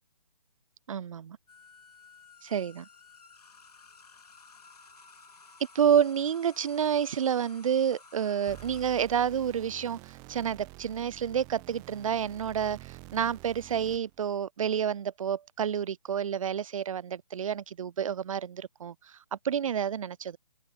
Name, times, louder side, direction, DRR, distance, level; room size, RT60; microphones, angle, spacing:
voice 1, 0.9-1.4 2.4-2.9 5.7-20.4, right 8 dB, 55° right, 0.5 m, -29 dB
sound 1, 1.5-10.4, left 4 dB, 80° left, 1.9 m, -55 dB
sound 2, 8.5-14.2, right 26 dB, 15° right, 0.7 m, -48 dB
figure-of-eight pair, 145°, 20 cm